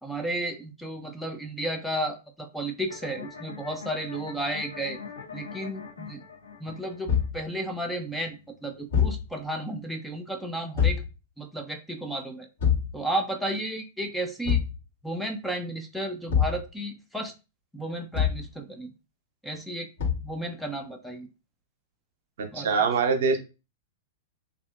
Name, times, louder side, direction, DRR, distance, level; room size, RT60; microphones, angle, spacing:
voice 1, 0.0-5.0 5.3-6.2 6.6-11.0 11.4-12.5 12.9-14.6 15.0-17.3 17.7-18.9 19.4-19.9 20.2-21.3 22.5-22.7, right 1 dB, ahead, 5 dB, 0.4 m, -33 dB
sound 1, 2.9-9.8, left 6 dB, 80° left, 0.7 m, -44 dB
Thump thud, 7.1-7.4 8.9-9.3 10.7-11.1 12.6-12.9 14.4-14.8 16.3-16.6 18.1-18.5 20.0-20.3, left 8 dB, 65° left, 1.3 m, -24 dB
voice 2, 22.4-23.4, right 5 dB, 60° right, 5 dB, 0.6 m, -24 dB
2.7 x 2.5 x 2.3 m, 0.30 s
figure-of-eight pair, 100°, 0 cm